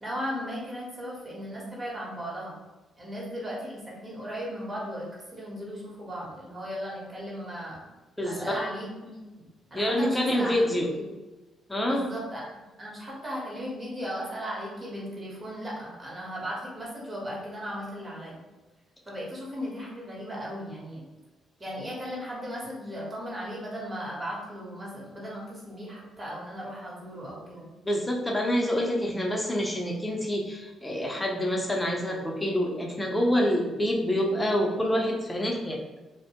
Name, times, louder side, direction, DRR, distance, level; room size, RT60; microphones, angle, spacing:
voice 1, 0.0-2.6 3.0-7.8 8.2-10.7 10.9-11.1 11.8-12.5 12.8-18.4 19.1-21.0 21.6-27.7, equal, 30° right, -4 dB, 1.0 m, -36 dB
voice 2, 8.2-8.6 9.7-10.9 11.7-12.1 27.9-35.8, equal, 10° left, 0 dB, 0.5 m, -27 dB
2.6 x 2.1 x 2.8 m, 1.1 s
cardioid pair, 90°, 0 cm